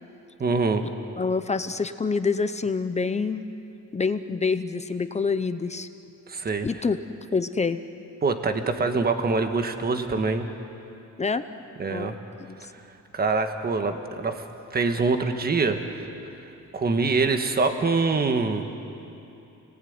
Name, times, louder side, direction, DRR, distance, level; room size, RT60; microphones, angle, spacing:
voice 1, 0.4-0.9 6.3-6.7 8.2-10.4 11.8-12.2 12.6-12.8 13.1-14.4 14.7-15.8 16.7-18.6, right 4 dB, 30° right, 6 dB, 1.5 m, -24 dB
voice 2, 1.2-3.4 3.9-5.9 6.6-7.0 7.3-7.8 11.2-11.4 11.9-12.6, left 4 dB, 20° left, 10 dB, 0.7 m, -26 dB
29.5 x 19.0 x 9.6 m, 2.8 s
wide cardioid pair, 170°, 32 cm